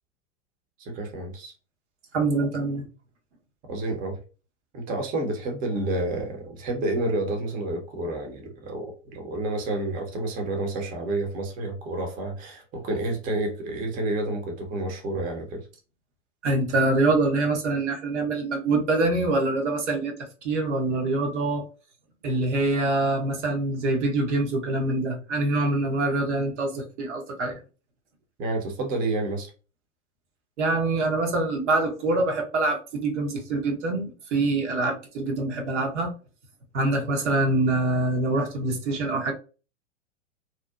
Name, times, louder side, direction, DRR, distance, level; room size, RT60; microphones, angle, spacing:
voice 1, 0.8-1.5 3.7-4.1 4.7-15.6 28.4-29.5, right 2 dB, 20° right, 2 dB, 0.6 m, -29 dB
voice 2, 2.1-2.9 16.4-20.1 20.4-21.6 22.2-27.6 30.6-36.1 36.7-39.3, right 2 dB, 70° right, 2 dB, 0.9 m, -25 dB
2.7 x 2.1 x 2.3 m, 0.35 s
hypercardioid pair, 110°, 37 cm